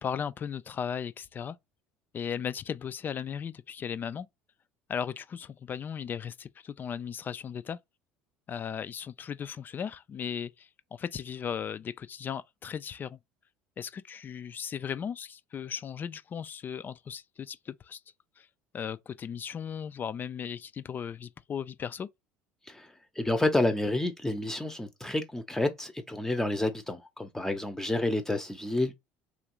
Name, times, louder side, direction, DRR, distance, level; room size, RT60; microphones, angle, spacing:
voice 1, 0.0-1.6 2.1-4.3 4.9-7.8 8.5-13.2 13.8-18.0 18.4-18.5 18.7-22.1, left 7 dB, 35° left, 0.4 m, -36 dB
voice 2, 22.7-28.9, left 2 dB, 10° left, 0.7 m, -29 dB
3.1 x 2.5 x 3.0 m
hypercardioid pair, 75°, 5 cm